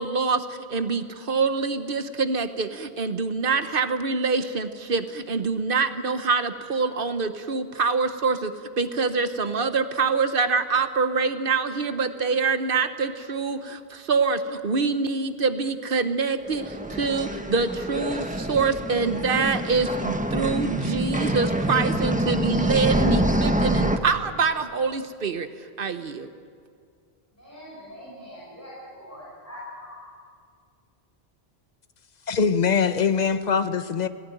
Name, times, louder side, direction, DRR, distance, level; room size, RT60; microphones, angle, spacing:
voice 1, 0.0-25.5 25.8-26.3, right 4 dB, 60° right, 10 dB, 1.1 m, -25 dB
sound 1, 16.5-24.0, right 1 dB, 10° right, 1.0 m, -26 dB
voice 2, 27.3-30.1, left 1 dB, 15° left, -8 dB, 6.6 m, -42 dB
voice 3, 32.3-34.1, left 6 dB, 45° left, 11 dB, 0.8 m, -22 dB
18.5 x 17.0 x 9.1 m, 2.2 s
omnidirectional pair, 1.1 m